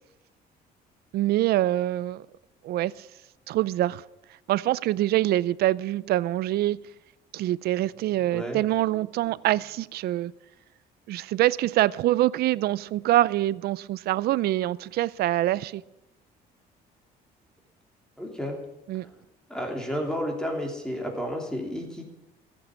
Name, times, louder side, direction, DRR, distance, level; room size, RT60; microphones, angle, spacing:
voice 1, 1.1-2.2 2.6-3.1 3.5-4.0 4.5-6.8 7.3-10.3 11.1-15.8 18.9-19.1, right 15 dB, 70° right, 0.5 m, -25 dB
voice 2, 8.3-8.6 18.2-18.6 18.9-19.2 19.5-22.0, equal, 5° left, 3.2 m, -32 dB
14.5 x 8.4 x 8.6 m
cardioid pair, 110°, 17 cm